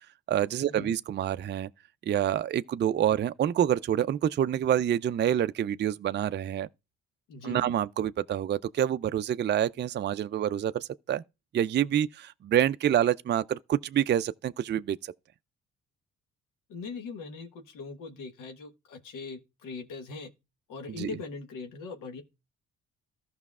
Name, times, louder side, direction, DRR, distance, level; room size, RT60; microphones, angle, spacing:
voice 1, 0.3-1.7 2.1-6.7 7.4-11.2 11.5-15.1 21.0-21.1, right 10 dB, 35° right, 0.4 m, -27 dB
voice 2, 7.3-7.7 16.7-20.3 20.7-22.2, left 4 dB, 80° left, 1.3 m, -41 dB
14.5 x 5.6 x 2.4 m
supercardioid pair, 55°, 31 cm